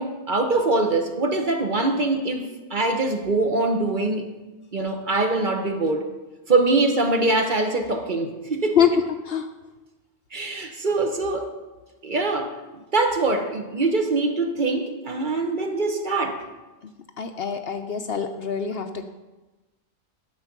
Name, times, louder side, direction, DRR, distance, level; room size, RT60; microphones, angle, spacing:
voice 1, 0.0-4.3 4.7-6.1 6.5-8.8 10.3-11.5 12.0-12.6 12.9-16.4, right 2 dB, 40° right, 4 dB, 1.0 m, -23 dB
voice 2, 17.2-19.0, left 8 dB, 60° left, 7 dB, 0.8 m, -24 dB
10.5 x 6.7 x 5.9 m, 1.1 s
omnidirectional pair, 1.3 m